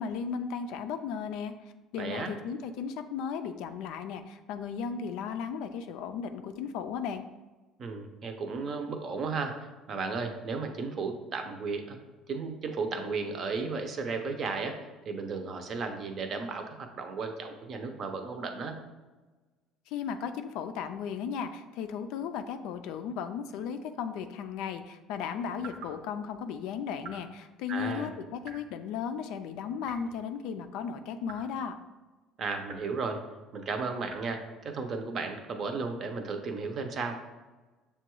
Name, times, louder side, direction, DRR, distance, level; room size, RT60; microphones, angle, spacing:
voice 1, 0.0-1.5 1.9-7.2 19.9-31.8, left 7 dB, 80° left, 9 dB, 0.3 m, -35 dB
voice 2, 2.0-2.3 7.8-12.0 12.3-14.8 15.0-18.8 27.7-28.1 32.4-33.2 33.5-37.2, right 4 dB, 40° right, 5 dB, 0.5 m, -34 dB
sound 1, 25.6-26.0 27.0-27.3 28.4-28.8 29.8-30.2 31.2-31.5 32.6-33.0 34.1-34.3, right 4 dB, 90° right, 0.9 m, -47 dB
6.6 x 2.3 x 3.0 m, 1.2 s
cardioid pair, 125°, 0 cm